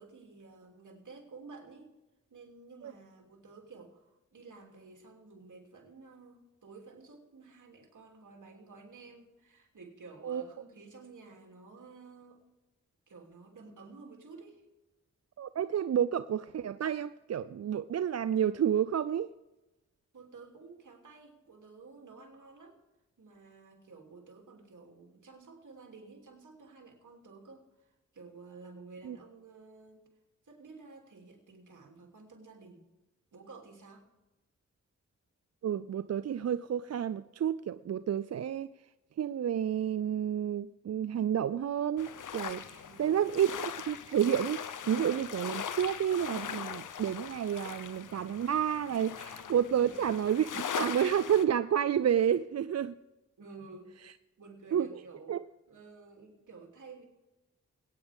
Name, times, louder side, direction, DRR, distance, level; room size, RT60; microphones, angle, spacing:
voice 1, 0.0-1.9 2.3-12.4 13.1-14.6 20.1-22.8 23.2-30.1 30.4-32.8 33.3-34.1 42.7-43.2 53.4-55.4 55.7-57.0, right 4 dB, 75° right, 2.9 m, -52 dB
voice 2, 15.4-19.3 29.0-29.2 35.6-38.7 39.2-53.0 54.7-55.0 55.3-55.4, right 9 dB, 55° right, 0.4 m, -30 dB
sound 1, 42.0-51.4, left 8 dB, 80° left, 0.7 m, -40 dB
22.0 x 9.4 x 3.6 m
cardioid pair, 45°, 31 cm